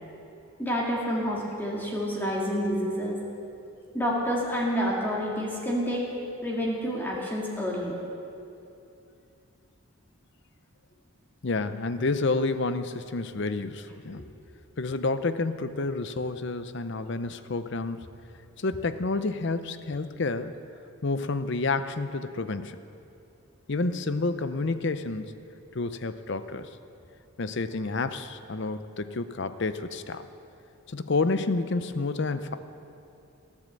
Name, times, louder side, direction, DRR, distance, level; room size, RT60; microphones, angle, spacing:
voice 1, 0.6-3.2 3.9-6.0 6.4-7.9 14.2-14.3, equal, 10° left, -4 dB, 2.0 m, -28 dB
voice 2, 11.4-14.2 14.8-18.0 18.6-20.5 21.0-22.8 23.7-25.3 25.7-26.7 27.4-30.3 30.9-32.5, left 3 dB, 55° left, 11 dB, 0.6 m, -29 dB
17.5 x 9.9 x 7.6 m, 2.7 s
head